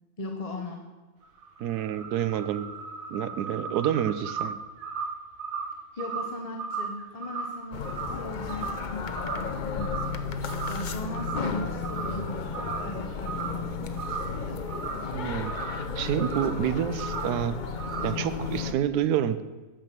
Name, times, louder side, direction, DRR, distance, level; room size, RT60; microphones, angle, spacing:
voice 1, 0.2-0.8 6.0-10.3 10.7-14.6, left 2 dB, 30° left, 2 dB, 0.8 m, -38 dB
sound 1, 1.2-8.9 9.1-9.5 9.8-10.9 11.1-11.5 11.8-12.3 12.5-13.7 13.9-15.9 16.2-16.6 17.0-17.4 17.8-18.3, right 5 dB, 65° right, 1.5 m, -36 dB
voice 2, 1.6-2.7 3.1-4.6 15.1-17.6 18.0-19.4, right 10 dB, 85° right, 13 dB, 1.2 m, -28 dB
sound 2, 7.7-18.7, left 5 dB, 60° left, 0.5 m, -33 dB
9.1 x 6.0 x 7.4 m, 1.2 s
omnidirectional pair, 1.6 m